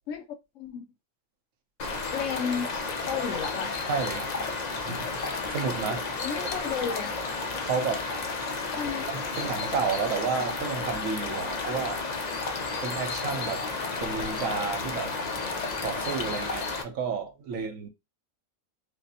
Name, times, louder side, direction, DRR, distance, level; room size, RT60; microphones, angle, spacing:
voice 1, 0.6-0.9 2.1-2.7 3.1-3.7 6.2-7.2 8.8-9.1, left 7 dB, 75° left, 0.9 m, -32 dB
sound 1, 1.8-16.8, left 3 dB, 50° left, 0.5 m, -32 dB
voice 2, 3.9-4.3 4.8-5.1 5.5-6.1 7.6-8.1 9.1-12.0 12.8-13.6 14.0-15.1 15.8-17.9, right 5 dB, 80° right, 1.2 m, -31 dB
5.0 x 2.0 x 2.7 m
omnidirectional pair, 1.4 m